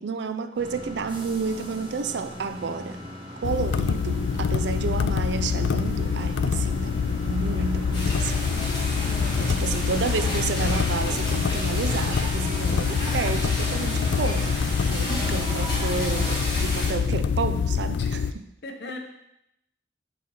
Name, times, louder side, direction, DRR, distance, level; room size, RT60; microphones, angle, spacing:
voice 1, 0.0-3.0 3.4-8.4 9.4-14.6 14.9-16.3 16.6-18.2, right 5 dB, 80° right, 10 dB, 0.5 m, -31 dB
sound 1, 0.5-16.4, right 1 dB, 30° right, 1.0 m, -38 dB
sound 2, 3.4-18.3, left 6 dB, 90° left, 0.3 m, -26 dB
sound 3, 7.9-16.9, left 1 dB, 25° left, 2.0 m, -33 dB
voice 2, 9.1-9.6 15.1-15.6 18.0-18.1 18.6-19.0, left 1 dB, 70° left, 3 dB, 0.8 m, -38 dB
6.4 x 4.1 x 5.4 m, 0.83 s
head